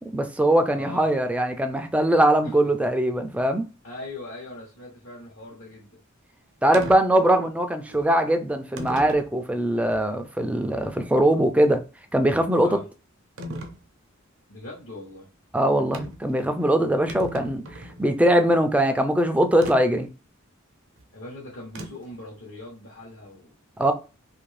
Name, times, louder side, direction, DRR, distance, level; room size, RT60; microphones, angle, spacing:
voice 1, 0.1-3.7 6.6-11.8 12.1-12.8 15.5-17.6 18.0-20.1 23.8-23.9, right 1 dB, 5° right, 0.3 m, -21 dB
voice 2, 0.7-1.1 2.4-2.5 3.8-6.0 12.5-12.9 14.5-15.3 21.1-23.5, left 2 dB, 65° left, 1.0 m, -40 dB
sound 1, 6.7-7.0 7.9-8.0 8.8-9.3 9.9-10.0 13.4-13.8 15.9-16.3 16.6-16.7 16.9-18.0 19.6-19.8 21.7-22.1, equal, 65° right, 0.6 m, -36 dB
2.6 x 2.5 x 3.2 m
head